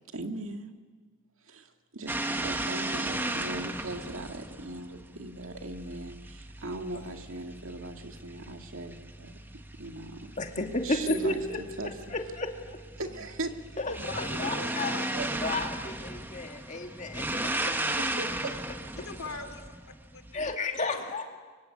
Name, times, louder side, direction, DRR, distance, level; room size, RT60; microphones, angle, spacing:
voice 1, 0.1-0.7 1.4-9.4 9.8-10.3 10.6-11.9 13.0-13.5 15.1-15.3 18.2-18.5, right 2 dB, 70° right, 5 dB, 2.1 m, -39 dB
sound 1, 2.1-20.6, right 1 dB, 10° right, 1.0 m, -36 dB
voice 2, 10.4-11.6 12.1-12.8 13.8-14.9 15.4-18.0 20.3-21.4, left 2 dB, 35° left, 3 dB, 2.5 m, -33 dB
voice 3, 13.9-15.6 19.0-20.6 20.8-21.0, left 3 dB, 85° left, 8 dB, 2.6 m, -42 dB
25.0 x 23.5 x 8.6 m, 1.4 s
head